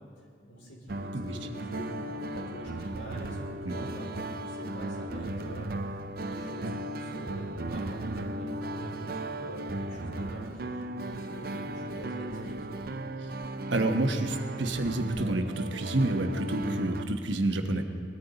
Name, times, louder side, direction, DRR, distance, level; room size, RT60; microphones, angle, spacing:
voice 1, 0.4-13.0, equal, 75° left, -3 dB, 4.2 m, -44 dB
sound 1, 0.9-17.1, right 1 dB, 50° right, 0.6 m, -36 dB
voice 2, 13.7-17.8, right 2 dB, 70° right, 5 dB, 1.2 m, -29 dB
20.0 x 13.5 x 4.0 m, 2.3 s
head